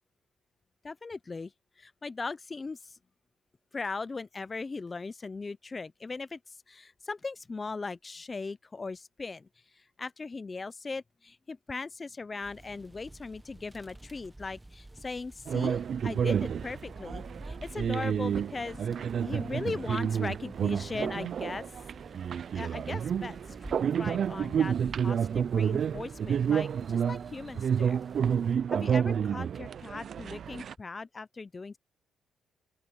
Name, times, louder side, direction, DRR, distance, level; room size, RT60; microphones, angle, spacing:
voice 1, 0.8-1.5 1.8-3.0 3.7-9.5 9.8-21.6 22.5-23.4 23.7-24.8 25.0-28.0 28.7-31.8, left 4 dB, 30° left, 0.6 m, -39 dB
sound 1, 12.4-28.6, right 1 dB, 10° right, 1.1 m, -50 dB
sound 2, 15.5-30.7, right 8 dB, 55° right, 0.3 m, -30 dB
open air
cardioid pair, 90°, 0 cm